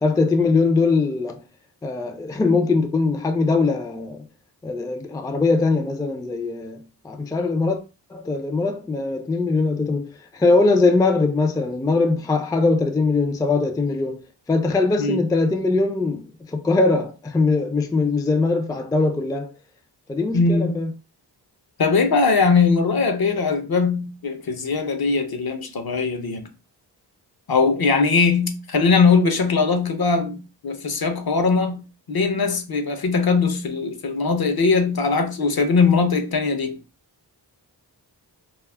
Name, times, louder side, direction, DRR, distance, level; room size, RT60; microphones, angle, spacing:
voice 1, 0.0-1.4 1.8-4.3 4.6-7.8 8.1-19.5 20.1-20.9, left 3 dB, 10° left, 0.3 m, -21 dB
voice 2, 20.3-20.8 21.8-26.5 27.5-31.8 32.1-36.8, left 4 dB, 55° left, 0.7 m, -20 dB
2.3 x 2.1 x 3.3 m
cardioid pair, 40°, 44 cm